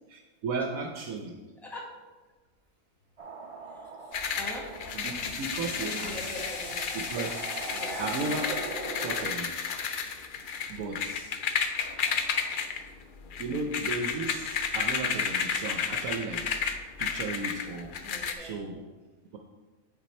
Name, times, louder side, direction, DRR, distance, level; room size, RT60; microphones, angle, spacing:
voice 1, 0.1-1.4 4.9-6.4 6.9-7.5 8.0-8.6 9.0-9.7 10.7-11.3 13.4-16.5 17.0-17.9 18.4-18.8, right 3 dB, 70° right, 2 dB, 1.0 m, -35 dB
sound 1, 3.2-9.3, right 2 dB, 35° right, 0.5 m, -42 dB
sound 2, 3.9-4.3 4.7-11.0, left 1 dB, 40° left, 2.2 m, -46 dB
sound 3, 4.1-18.3, left 6 dB, 80° left, 0.4 m, -32 dB
voice 2, 4.4-4.7 5.8-6.8 7.7-8.1 18.0-18.6, equal, ahead, -4 dB, 1.2 m, -40 dB
9.4 x 4.2 x 4.2 m, 1.3 s
omnidirectional pair, 1.6 m